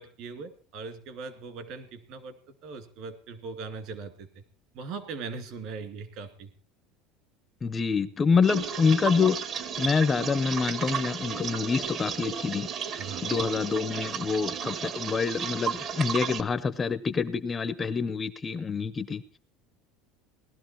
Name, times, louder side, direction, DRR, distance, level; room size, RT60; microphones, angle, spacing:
voice 1, 0.0-2.3 2.6-4.3 4.7-6.5 13.0-13.2, right 4 dB, 55° right, 10 dB, 2.4 m, -40 dB
voice 2, 7.6-9.4 9.8-12.7 13.2-19.2, left 5 dB, 20° left, 14 dB, 0.6 m, -26 dB
sound 1, 8.4-16.4, right 7 dB, 35° right, 0.9 m, -33 dB
18.0 x 12.5 x 4.4 m, 0.38 s
cardioid pair, 155°, 0 cm